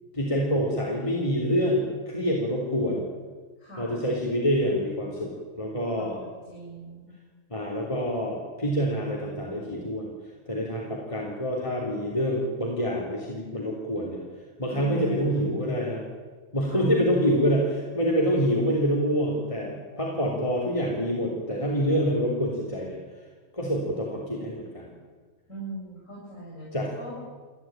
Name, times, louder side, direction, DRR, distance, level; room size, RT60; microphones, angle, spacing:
voice 1, 0.1-3.1 3.8-6.2 7.5-10.1 10.5-14.2 14.6-16.0 16.5-23.0 23.5-24.9 26.7-26.9, equal, 25° left, -3 dB, 3.5 m, -26 dB
voice 2, 3.6-4.0 6.0-7.1 14.7-15.5 16.7-16.9 25.5-26.7 27.0-27.2, right 1 dB, 90° left, -4 dB, 8.6 m, -40 dB
29.0 x 12.5 x 9.0 m, 1.4 s
omnidirectional pair, 1.4 m